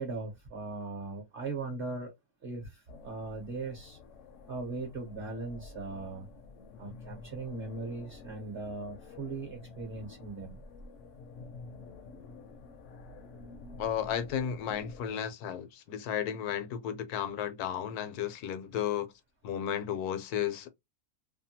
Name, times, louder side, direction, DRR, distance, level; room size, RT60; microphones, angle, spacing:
voice 1, 0.0-2.1 2.4-4.0 4.5-6.3 6.8-10.6, right 3 dB, 45° right, 0.9 m, -39 dB
sound 1, 2.9-15.1, left 3 dB, 65° left, 0.8 m, -49 dB
voice 2, 13.8-19.1 19.4-20.7, left 9 dB, 80° left, 1.1 m, -33 dB
2.8 x 2.2 x 2.7 m
omnidirectional pair, 1.6 m